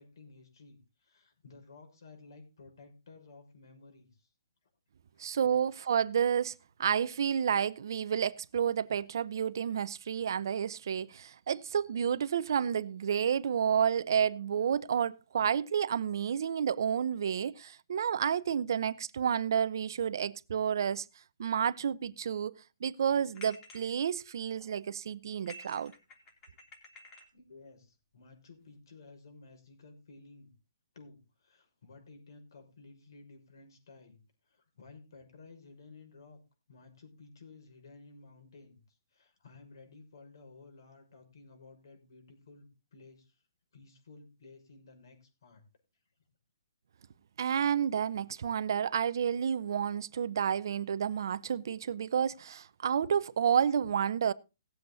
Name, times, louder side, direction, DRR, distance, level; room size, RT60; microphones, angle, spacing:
voice 1, 0.0-4.3 5.3-5.4 5.8-5.9 27.3-30.5 30.9-36.4 36.7-43.4 43.7-45.6, left 3 dB, 65° left, 6.1 m, -55 dB
voice 2, 5.2-6.5 6.8-21.1 21.4-22.5 22.8-25.9 47.4-54.3, right 8 dB, 55° right, 0.7 m, -30 dB
sound 1, 23.3-23.9 24.4-24.8 25.4-27.3, left 2 dB, 20° left, 3.3 m, -52 dB
18.0 x 7.9 x 4.1 m
hypercardioid pair, 160°, 2 cm